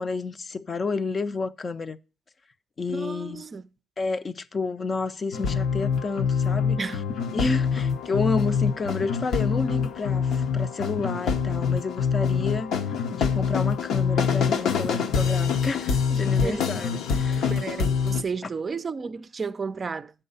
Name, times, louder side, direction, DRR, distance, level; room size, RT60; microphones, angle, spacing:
voice 1, 0.0-2.0 2.8-3.5 4.0-6.8 7.3-12.7 13.1-17.5, left 4 dB, 35° left, 0.5 m, -30 dB
voice 2, 2.9-3.6 6.8-7.0 16.4-16.6 17.3-20.1, right 5 dB, 35° right, 0.4 m, -32 dB
sound 1, 5.3-18.2, left 6 dB, 85° left, 0.9 m, -25 dB
7.9 x 5.6 x 5.4 m
cardioid pair, 100°, 0 cm